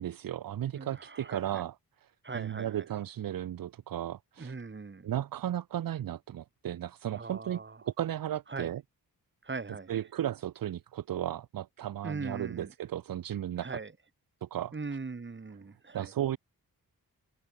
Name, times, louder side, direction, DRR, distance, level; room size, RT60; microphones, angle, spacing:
voice 1, 0.0-1.7 2.0-2.1 2.3-4.5 5.0-8.8 9.9-13.7 14.4-14.7 15.9-16.4, right 11 dB, 70° right, 0.7 m, -35 dB
voice 2, 0.7-1.6 2.2-2.8 4.4-5.1 7.1-7.8 8.5-8.7 9.4-10.0 12.0-12.7 13.6-13.9 14.7-16.1, right 4 dB, 30° right, 5.5 m, -40 dB
open air
wide cardioid pair, 160°, 36 cm